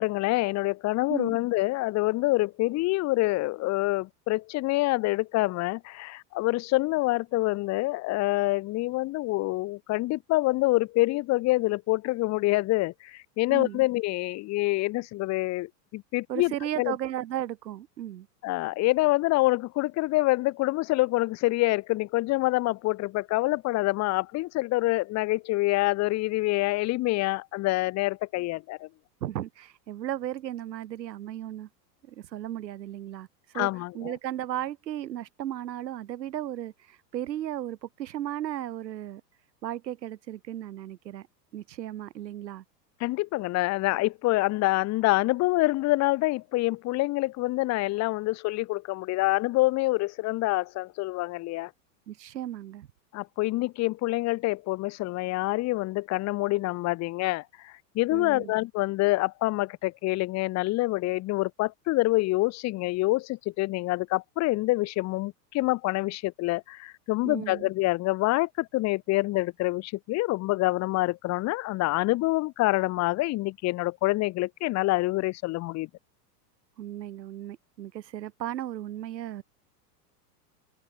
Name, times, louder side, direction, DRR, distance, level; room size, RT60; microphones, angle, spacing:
voice 1, 0.0-16.5 16.8-16.9 18.4-28.9 33.5-34.1 43.0-51.7 53.1-75.9, left 20 dB, 35° left, 0.8 m, -26 dB
voice 2, 13.5-13.8 16.3-18.3 29.2-31.7 32.0-33.3 33.5-33.7 33.9-39.2 39.6-41.3 41.5-42.6 52.1-52.9 58.1-58.5 67.2-67.7 76.8-79.4, right 12 dB, 90° right, 2.2 m, -35 dB
hypercardioid pair, 115°, 49 cm